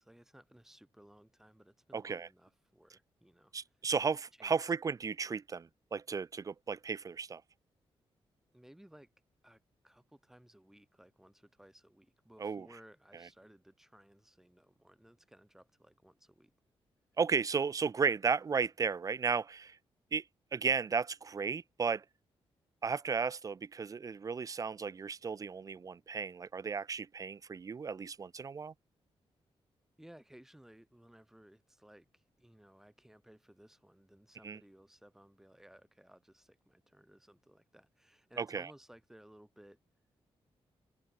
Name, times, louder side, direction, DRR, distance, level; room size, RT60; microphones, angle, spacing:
voice 1, 0.0-3.5 4.4-4.7 8.5-9.1 9.4-16.5 30.0-39.8, right 1 dB, 5° right, 6.2 m, -60 dB
voice 2, 1.9-2.3 3.5-7.4 12.4-12.7 17.2-19.8 20.1-20.2 20.5-22.0 22.8-28.7 34.4-34.6 38.4-38.7, right 5 dB, 35° right, 1.1 m, -34 dB
wide cardioid pair, 150°, 10 cm